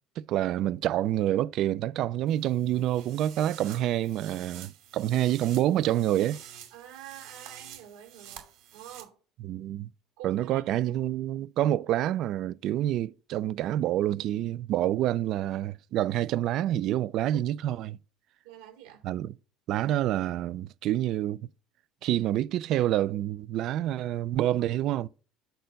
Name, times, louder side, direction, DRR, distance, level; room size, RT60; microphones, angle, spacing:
voice 1, 0.2-6.4 9.4-9.9 10.2-18.0 19.0-19.3 19.7-21.5 22.0-25.1, right 12 dB, 50° right, 0.3 m, -27 dB
sound 1, 2.3-9.0, right 10 dB, 70° right, 2.9 m, -48 dB
voice 2, 6.7-8.4 8.7-9.1 10.2-10.9 18.4-19.0, right 10 dB, 85° right, 4.2 m, -47 dB
7.8 x 4.3 x 5.3 m
cardioid pair, 150°, 0 cm